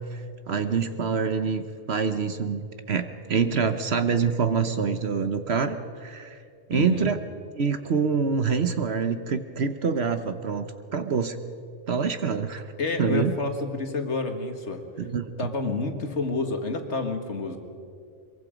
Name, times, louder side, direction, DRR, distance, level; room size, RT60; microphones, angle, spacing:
voice 1, 0.5-6.4 6.7-7.2 7.6-11.4 11.9-12.7 13.0-13.3 15.0-15.2, right 5 dB, 55° right, 9 dB, 1.1 m, -26 dB
voice 2, 6.7-7.1 12.8-14.8 15.4-17.6, left 3 dB, 55° left, 5 dB, 1.9 m, -29 dB
23.0 x 22.5 x 5.1 m, 2.4 s
omnidirectional pair, 1.4 m